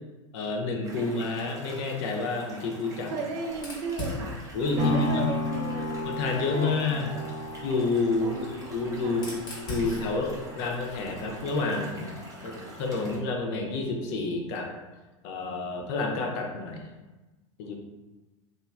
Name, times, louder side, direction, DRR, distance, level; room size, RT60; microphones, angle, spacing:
voice 1, 0.3-3.1 4.5-5.4 6.0-7.1 7.6-8.4 8.7-9.3 9.7-12.1 12.4-14.7 15.2-16.9 17.6-17.7, left 3 dB, 55° left, 1 dB, 0.6 m, -29 dB
sound 1, 0.8-13.2, right 1 dB, 20° right, 0.8 m, -46 dB
voice 2, 3.1-4.5 4.8-6.0 6.5-7.0 8.2-8.5 9.0-9.3, right 3 dB, 60° right, 0 dB, 0.6 m, -35 dB
Fire, 3.5-6.3 7.4-11.6, left 1 dB, 25° left, 1.1 m, -41 dB
sound 2, 4.8-12.9 13.4-13.5, left 2 dB, 40° right, 1.2 m, -34 dB
3.0 x 2.4 x 2.3 m, 1.1 s
hypercardioid pair, 90°, 17 cm